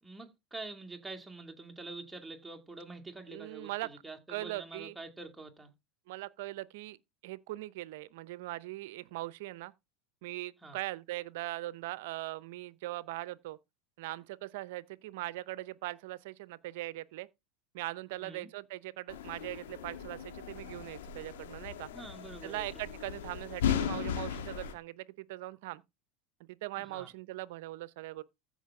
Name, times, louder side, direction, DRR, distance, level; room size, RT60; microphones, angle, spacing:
voice 1, 0.0-5.7 10.6-10.8 18.1-18.5 21.9-22.8 26.8-27.1, right 3 dB, 10° right, 2.4 m, -46 dB
voice 2, 3.3-3.9 4.3-4.9 6.1-7.0 7.2-9.7 10.2-13.6 14.0-17.3 17.7-21.9 22.4-25.8 26.5-28.2, right 18 dB, 70° right, 0.7 m, -40 dB
sound 1, 19.1-24.7, left 9 dB, 80° left, 1.6 m, -37 dB
15.0 x 5.6 x 3.7 m
hypercardioid pair, 95°, 0 cm